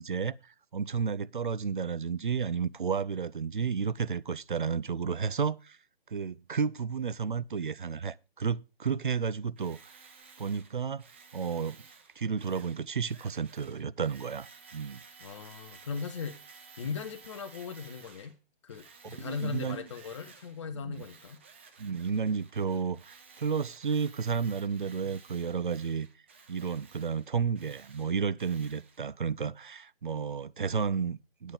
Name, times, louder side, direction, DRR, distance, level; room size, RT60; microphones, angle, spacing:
voice 1, 0.0-5.8 6.1-10.0 10.4-11.0 11.3-11.8 12.2-15.0 19.0-19.8 20.7-21.1 21.8-26.1 26.5-31.5, right 6 dB, 55° right, 0.6 m, -32 dB
Tools, 9.6-18.3 18.7-20.6 20.9-29.0, right 5 dB, 10° right, 0.6 m, -55 dB
voice 2, 15.2-16.4 16.8-18.4 18.6-21.4, left 5 dB, 30° left, 1.1 m, -38 dB
9.2 x 8.3 x 5.0 m
figure-of-eight pair, 140°, 30 cm